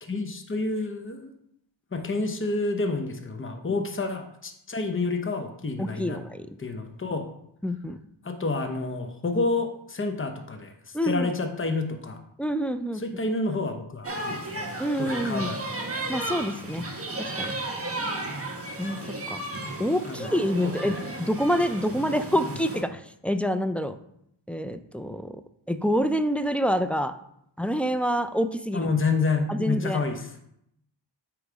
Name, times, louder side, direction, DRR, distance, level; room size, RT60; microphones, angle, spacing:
voice 1, 0.0-1.3 1.9-6.2 6.6-7.3 8.2-12.2 13.0-14.7 15.0-15.7 20.1-20.3 20.8-20.9 28.7-30.3, left 3 dB, 25° left, 5 dB, 0.8 m, -29 dB
voice 2, 5.8-6.5 7.6-8.0 10.9-11.3 12.4-13.0 14.8-15.5 16.1-16.9 17.2-17.5 18.8-19.4 19.8-24.0 24.5-25.4 25.7-27.1 27.6-28.9 29.5-30.0, equal, 5° left, 8 dB, 0.3 m, -27 dB
sound 1, 14.0-22.8, right 1 dB, 30° right, 1.2 m, -34 dB
8.1 x 3.1 x 5.0 m, 0.74 s
wide cardioid pair, 60°, 46 cm